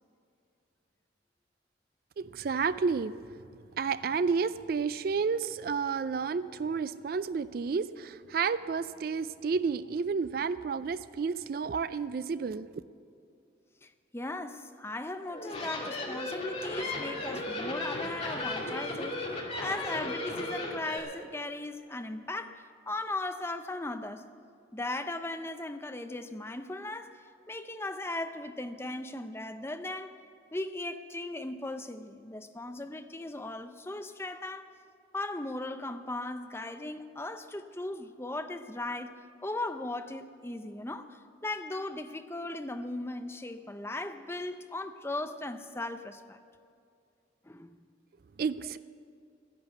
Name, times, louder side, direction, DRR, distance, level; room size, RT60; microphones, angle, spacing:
voice 1, 2.2-3.1 3.8-12.7 48.4-48.8, right 5 dB, 50° right, 15 dB, 0.3 m, -31 dB
voice 2, 13.8-24.3 24.7-30.1 30.5-34.7 35.1-46.4 47.5-47.9, left 2 dB, 15° left, 8 dB, 0.5 m, -38 dB
sound 1, 15.2-21.0, left 2 dB, 35° left, 2.2 m, -35 dB
13.0 x 10.5 x 8.1 m, 2.4 s
head